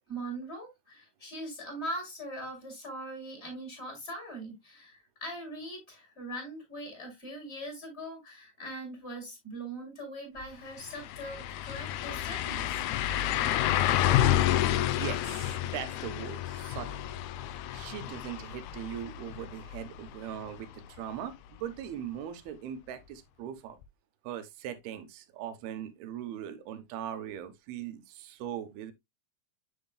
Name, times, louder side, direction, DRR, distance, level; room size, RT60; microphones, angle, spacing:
voice 1, 0.1-12.8, right 1 dB, 15° left, 3.6 m, -41 dB
sound 1, 10.4-10.5 10.8-20.6 21.0-21.1 23.8-23.9, left 12 dB, 85° left, 2.6 m, -30 dB
voice 2, 14.9-17.0 17.7-23.8 24.2-28.9, right 10 dB, 80° right, 2.7 m, -40 dB
7.7 x 7.1 x 2.2 m
omnidirectional pair, 4.7 m